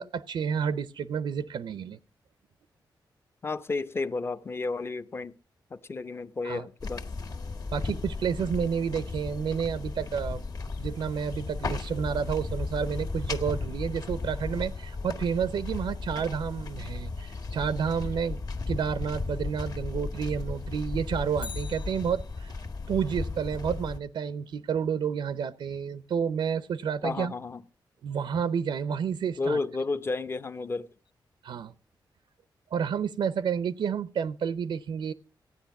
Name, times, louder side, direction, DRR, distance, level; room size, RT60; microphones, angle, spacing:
voice 1, 0.0-2.0 6.4-6.6 7.7-10.4 10.8-18.4 18.7-22.6 22.9-27.3 28.0-29.6 31.4-31.7 32.7-35.1, right 7 dB, 85° right, 0.6 m, -30 dB
voice 2, 3.4-5.4 5.9-7.0 27.0-27.6 29.4-30.9, left 3 dB, 30° left, 0.6 m, -32 dB
sound 1, 6.8-24.0, left 3 dB, 50° left, 1.6 m, -35 dB
Bicycle, 21.4-22.7 31.1-31.2, left 6 dB, 90° left, 0.7 m, -45 dB
15.0 x 9.6 x 5.8 m
wide cardioid pair, 160°, 8 cm